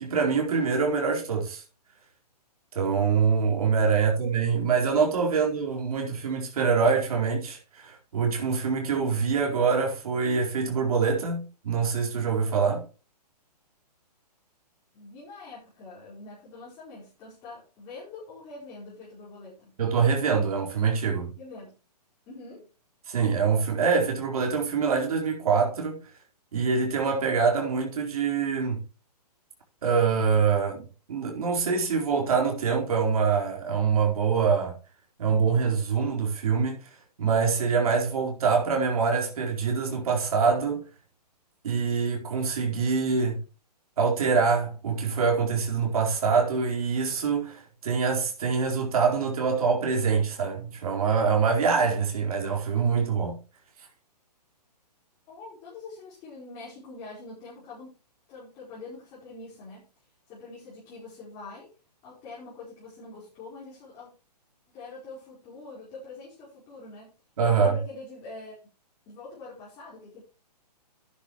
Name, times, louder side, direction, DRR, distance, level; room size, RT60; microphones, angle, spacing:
voice 1, 0.0-1.6 2.7-12.8 19.8-21.3 23.1-26.0 26.5-28.8 29.8-34.8 35.2-36.9 37.2-40.8 41.6-43.4 44.0-53.4 67.4-67.8, right 5 dB, 60° right, 4.4 m, -25 dB
voice 2, 14.9-19.7 21.4-21.7 22.3-22.7 55.3-58.0 58.3-59.8 60.3-61.7 62.0-64.1 64.7-67.1 67.4-68.6 69.1-70.2, left 3 dB, 20° left, 4.9 m, -44 dB
12.0 x 10.0 x 3.1 m
hypercardioid pair, 165°, 21 cm